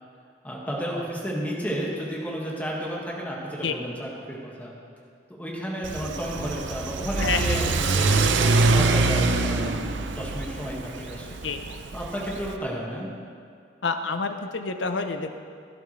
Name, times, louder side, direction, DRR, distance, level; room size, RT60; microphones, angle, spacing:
voice 1, 0.4-4.8 5.3-11.4 11.9-13.1, equal, 10° left, -4 dB, 2.0 m, -32 dB
Car / Accelerating revving vroom, 5.8-12.6, right 3 dB, 80° right, 0.7 m, -24 dB
voice 2, 7.2-7.6 11.4-11.6 13.8-15.3, left 4 dB, 90° left, 7 dB, 0.9 m, -28 dB
16.5 x 12.0 x 3.4 m, 2.2 s
head